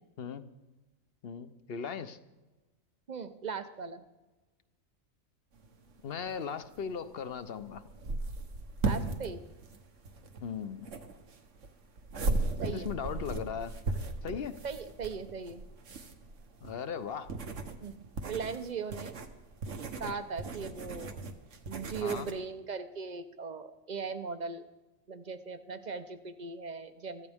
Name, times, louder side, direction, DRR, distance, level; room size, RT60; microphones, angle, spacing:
voice 1, 1.2-2.2 6.0-7.8 10.4-10.9 12.6-13.7 14.2-14.5 16.6-17.3 22.0-22.3, left 7 dB, 50° left, 12 dB, 0.9 m, -38 dB
voice 2, 3.1-4.0 8.8-9.4 12.6-12.9 14.6-15.6 17.8-19.2 20.0-21.4 21.7-24.6 25.1-27.3, right 5 dB, 40° right, 10 dB, 0.8 m, -39 dB
sound 1, 5.5-22.3, right 3 dB, 65° right, 1.5 m, -37 dB
24.0 x 14.5 x 3.6 m, 1.1 s
omnidirectional pair, 1.4 m